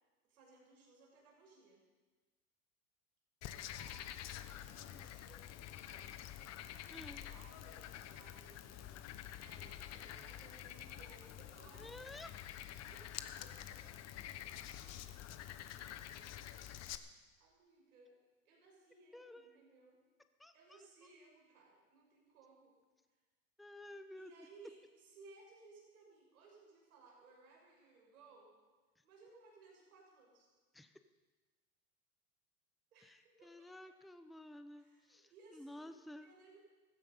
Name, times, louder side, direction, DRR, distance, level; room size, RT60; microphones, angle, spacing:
voice 1, 0.3-1.8 3.7-4.2 4.5-6.1 7.1-12.0 12.9-13.1 13.4-13.8 17.4-20.0 20.5-22.8 24.2-28.5 29.0-30.5 32.9-33.9 34.7-35.9 36.2-36.6, right 3 dB, 85° right, -1 dB, 6.1 m, -62 dB
Frog, 3.4-17.0, left 11 dB, 35° left, 1.0 m, -48 dB
voice 2, 6.9-7.2 11.8-12.3 19.1-19.6 20.4-20.8 23.6-24.3 30.7-30.9 33.0-36.3, left 1 dB, ahead, 9 dB, 0.6 m, -53 dB
16.0 x 14.5 x 5.5 m, 1.3 s
hypercardioid pair, 105°, 43 cm